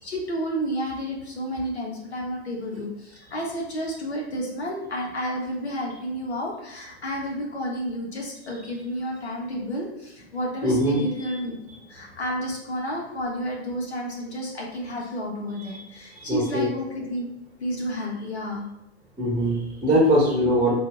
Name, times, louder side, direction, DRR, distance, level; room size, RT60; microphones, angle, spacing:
voice 1, 0.0-11.6 11.9-17.3 17.6-18.6, equal, 75° left, -2 dB, 1.4 m, -31 dB
voice 2, 10.6-11.0 16.2-16.7 19.2-20.7, equal, 10° right, -3 dB, 1.0 m, -21 dB
4.2 x 2.7 x 3.4 m, 0.86 s
figure-of-eight pair, 105°, 33 cm